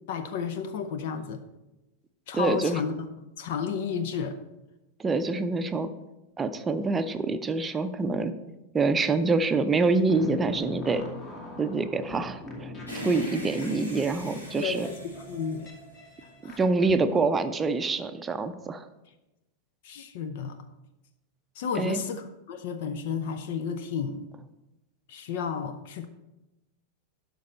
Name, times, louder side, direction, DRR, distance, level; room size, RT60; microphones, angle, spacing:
voice 1, 0.1-1.4 2.3-2.9 3.4-4.4 13.6-13.7 14.5-15.7 16.4-16.6 19.8-20.6 21.6-24.3 25.1-26.1, left 6 dB, 55° left, 10 dB, 0.7 m, -32 dB
voice 2, 2.3-2.8 5.0-5.9 6.4-8.3 8.7-11.0 11.6-14.9 16.4-18.8 21.8-22.0, right 3 dB, 15° right, 9 dB, 0.6 m, -26 dB
sound 1, 9.7-16.9, left 2 dB, 25° left, 2.0 m, -43 dB
sound 2, 12.9-16.4, equal, 75° left, 2.7 m, -41 dB
12.5 x 5.3 x 4.4 m, 0.98 s
figure-of-eight pair, 90°, 0 cm